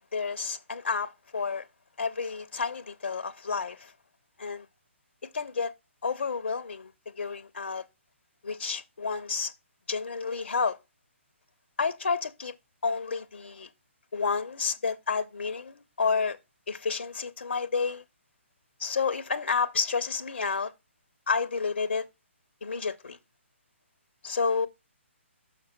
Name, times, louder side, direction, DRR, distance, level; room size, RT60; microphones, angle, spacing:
voice 1, 0.1-1.7 2.0-3.9 4.4-4.7 5.3-5.7 6.0-6.9 7.2-7.8 8.4-9.5 9.9-10.8 11.8-12.5 12.8-13.7 14.1-16.4 16.7-18.0 18.8-20.7 21.3-22.0 22.6-23.2 24.2-24.7, left 5 dB, 65° left, 0.5 m, -30 dB
6.3 x 5.9 x 4.1 m
figure-of-eight pair, 135°, 7 cm